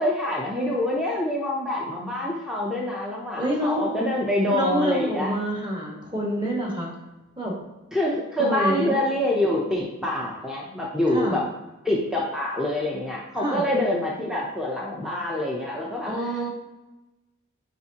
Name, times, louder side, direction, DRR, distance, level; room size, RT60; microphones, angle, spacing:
voice 1, 0.0-5.3 7.9-11.4 11.8-16.1, left 1 dB, ahead, -3 dB, 0.7 m, -26 dB
voice 2, 3.4-4.0 4.5-6.9 7.4-7.6 8.4-8.9 11.1-11.4 13.4-13.7 16.0-16.5, right 1 dB, 20° right, -2 dB, 1.5 m, -27 dB
9.1 x 3.6 x 2.9 m, 1.1 s
head